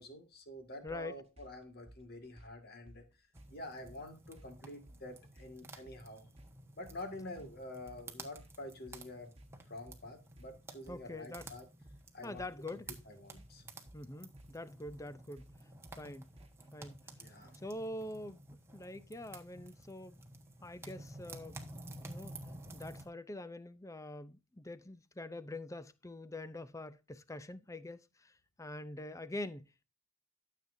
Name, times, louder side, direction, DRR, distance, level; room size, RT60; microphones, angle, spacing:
voice 1, 0.0-6.3 6.8-9.3 9.7-11.7 12.1-12.5 13.1-13.6 17.2-17.6, left 1 dB, 45° left, 1.9 m, -48 dB
voice 2, 0.8-1.1 10.9-11.5 12.2-12.9 13.9-15.5 16.0-16.3 16.7-17.0 17.5-18.4 18.7-20.2 20.6-21.6 22.0-22.3 22.7-29.7, left 1 dB, 15° left, 0.5 m, -45 dB
sound 1, 0.9-16.8, right 1 dB, 30° right, 1.6 m, -60 dB
sound 2, 3.3-23.0, right 2 dB, 10° right, 1.2 m, -52 dB
13.0 x 7.4 x 2.7 m
head